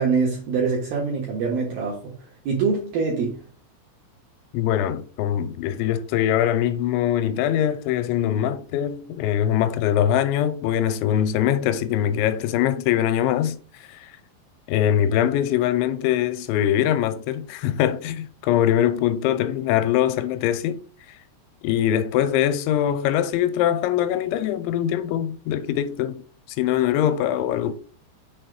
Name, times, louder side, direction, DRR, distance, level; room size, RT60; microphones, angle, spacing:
voice 1, 0.0-3.4, right 5 dB, 60° right, 3.0 m, -24 dB
voice 2, 4.5-14.1 14.7-20.8 21.6-26.2 26.6-27.8, left 10 dB, 90° left, 3.0 m, -22 dB
6.8 x 4.7 x 6.2 m
omnidirectional pair, 5.4 m